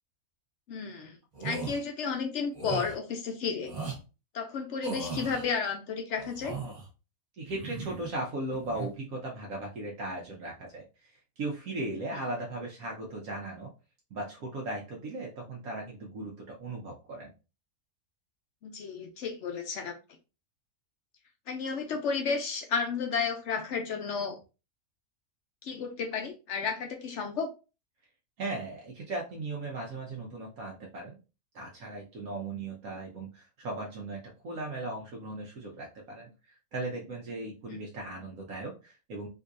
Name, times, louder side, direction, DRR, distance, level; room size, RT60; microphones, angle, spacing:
voice 1, 0.7-1.2 1.4-3.7 4.3-6.5 18.6-20.0 21.5-24.4 25.6-27.5, left 5 dB, 65° left, 0.7 m, -32 dB
sound 1, 1.3-1.8 2.5-2.9 3.6-4.0 4.8-5.5 6.2-6.9 7.5-8.1 8.5-8.9, right 4 dB, 35° right, 1.0 m, -37 dB
voice 2, 7.4-13.7 14.1-17.3 28.4-31.2 31.5-36.3 36.7-39.3, right 2 dB, 75° right, 1.2 m, -37 dB
3.8 x 2.6 x 2.5 m
omnidirectional pair, 1.5 m